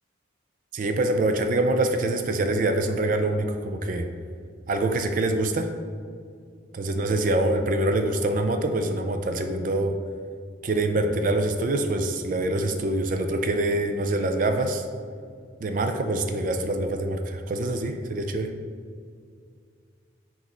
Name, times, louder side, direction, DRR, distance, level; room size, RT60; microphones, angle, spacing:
voice 1, 0.7-4.1 4.7-5.7 6.7-9.9 10.6-14.8 15.6-18.5, right 2 dB, 40° right, 5 dB, 0.4 m, -25 dB
6.1 x 3.0 x 5.2 m, 2.2 s
head